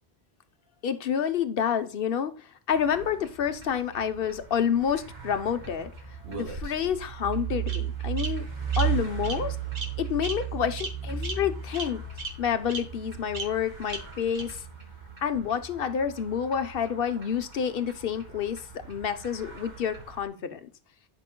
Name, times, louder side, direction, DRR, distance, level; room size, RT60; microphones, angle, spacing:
voice 1, 0.8-2.3 2.7-5.9 6.3-8.5 8.8-9.6 10.0-12.0 12.4-14.6 15.2-20.7, left 8 dB, 60° left, 9 dB, 1.0 m, -28 dB
sound 1, 2.7-20.2, right 9 dB, 40° right, 2.1 m, -36 dB
Bird vocalization bird call bird song, 6.2-7.0 7.7-7.8 8.2-8.3 8.7-8.8 9.2-9.4 9.7-9.9 10.2-10.3 10.8-10.9 11.2-11.3 11.7-11.8 12.2-12.3 12.7-12.8 13.3-13.4 13.9-14.0 14.3-14.4, right 3 dB, 85° right, 2.0 m, -34 dB
12.0 x 5.9 x 2.2 m, 0.36 s
omnidirectional pair, 1.1 m